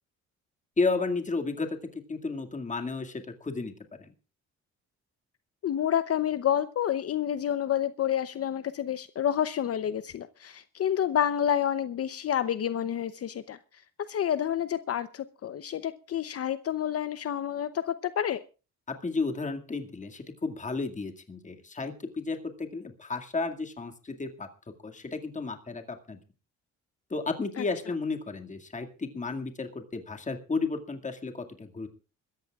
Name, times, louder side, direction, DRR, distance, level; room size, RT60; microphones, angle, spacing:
voice 1, 0.8-3.7 4.0-4.1 18.9-24.5 24.8-26.2 27.1-31.9, left 3 dB, 25° left, 4 dB, 2.2 m, -33 dB
voice 2, 5.6-13.6 14.1-18.4 27.6-27.7, left 10 dB, 50° left, 13 dB, 0.8 m, -29 dB
26.0 x 14.5 x 2.4 m, 0.34 s
cardioid pair, 90°, 30 cm